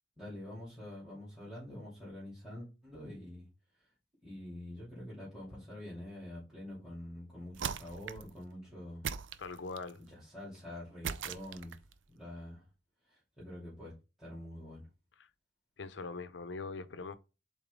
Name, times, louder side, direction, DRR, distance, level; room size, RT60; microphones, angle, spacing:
voice 1, 0.2-3.5 3.7-3.9 4.2-9.1 10.1-11.8 12.1-12.6 13.0-13.9 14.2-14.8, left 1 dB, ahead, 2.9 m, -46 dB
sound 1, 7.5-8.3 9.0-10.0 11.0-11.9, right 7 dB, 85° right, 0.5 m, -39 dB
voice 2, 9.4-10.0 15.8-17.2, left 4 dB, 80° left, 0.6 m, -42 dB
7.0 x 4.1 x 3.7 m
head